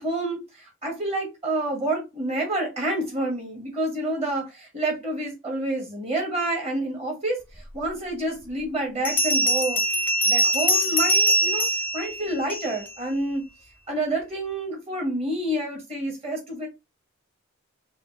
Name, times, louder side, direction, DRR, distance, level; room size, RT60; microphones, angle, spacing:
voice 1, 0.0-7.4 7.7-9.8 10.2-11.7 11.9-13.4 13.9-16.7, right 1 dB, 30° right, 1.4 m, -28 dB
Bell, 7.8-7.9 9.0-12.9, equal, 10° left, 0.5 m, -23 dB
4.1 x 2.4 x 3.2 m
head